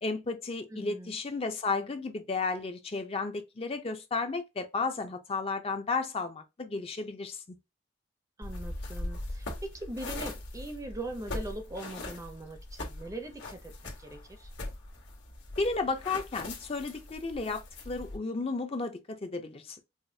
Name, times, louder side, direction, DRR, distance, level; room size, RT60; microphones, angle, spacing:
voice 1, 0.0-7.4 15.6-19.8, left 3 dB, 30° left, 0.5 m, -33 dB
voice 2, 0.7-1.1 8.4-14.5, right 1 dB, 20° right, 0.5 m, -41 dB
sound 1, 8.4-18.2, left 2 dB, 70° left, 1.3 m, -41 dB
4.9 x 2.2 x 2.7 m
head